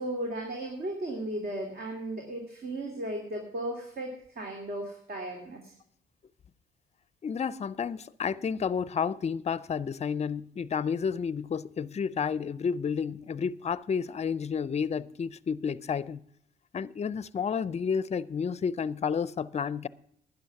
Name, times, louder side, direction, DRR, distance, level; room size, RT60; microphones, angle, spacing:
voice 1, 0.0-4.1 4.4-5.7, right 1 dB, 50° right, 2.6 m, -35 dB
voice 2, 7.2-16.2 16.7-19.9, left 6 dB, 35° left, 0.5 m, -31 dB
12.0 x 9.7 x 5.8 m
cardioid pair, 90°, 20 cm